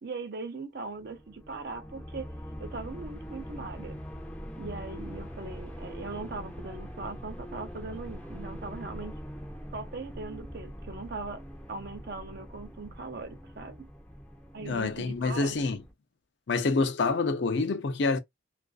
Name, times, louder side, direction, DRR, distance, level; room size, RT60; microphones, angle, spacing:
voice 1, 0.0-2.3 2.6-4.0 4.6-9.2 9.7-13.9 14.5-15.5, right 3 dB, 55° right, 0.5 m, -40 dB
sound 1, 1.0-15.9, equal, 5° left, 0.5 m, -43 dB
voice 2, 14.6-15.8 16.5-18.2, left 3 dB, 65° left, 0.5 m, -27 dB
2.4 x 2.3 x 2.3 m
head